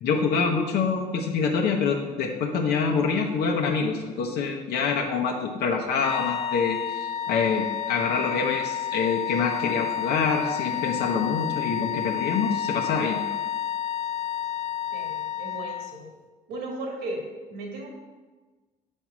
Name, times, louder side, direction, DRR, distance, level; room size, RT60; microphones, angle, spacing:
voice 1, 0.0-13.3, left 5 dB, 70° left, 1 dB, 0.8 m, -26 dB
sound 1, 6.0-16.0, left 10 dB, 40° left, 0.5 m, -30 dB
voice 2, 14.9-16.1 16.5-17.2 17.5-17.9, right 2 dB, 85° right, 1 dB, 1.9 m, -35 dB
7.4 x 4.5 x 6.1 m, 1.3 s
cardioid pair, 110°, 17 cm